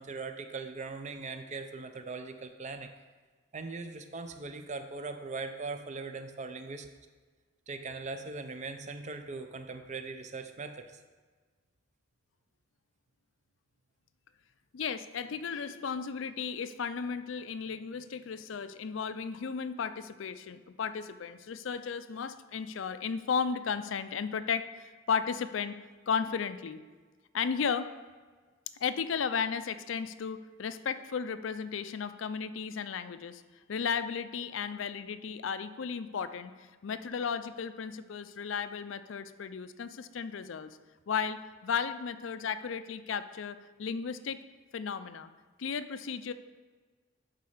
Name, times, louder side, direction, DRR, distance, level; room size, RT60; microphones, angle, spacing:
voice 1, 0.0-2.9 3.5-6.9 7.7-10.8, right 4 dB, 40° right, 7 dB, 0.6 m, -40 dB
voice 2, 14.7-25.7 26.1-26.8 27.3-27.9 28.8-33.4 33.7-40.8 41.1-44.4 44.7-45.3 45.6-46.3, left 6 dB, 80° left, 12 dB, 0.5 m, -34 dB
11.5 x 4.1 x 5.0 m, 1.4 s
head